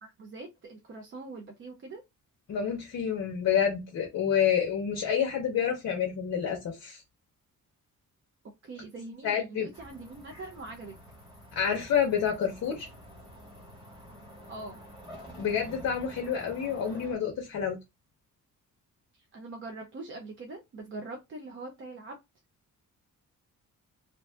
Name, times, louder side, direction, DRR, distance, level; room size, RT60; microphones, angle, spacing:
voice 1, 0.0-2.0 8.6-11.0 14.5-14.8 19.1-22.2, right 2 dB, 40° right, 0.5 m, -43 dB
voice 2, 2.5-7.0 9.2-9.7 11.5-12.9 15.4-17.8, left 8 dB, 50° left, 0.7 m, -28 dB
sound 1, 9.7-17.1, equal, 15° right, 1.3 m, -49 dB
2.6 x 2.4 x 3.3 m
wide cardioid pair, 180°, 33 cm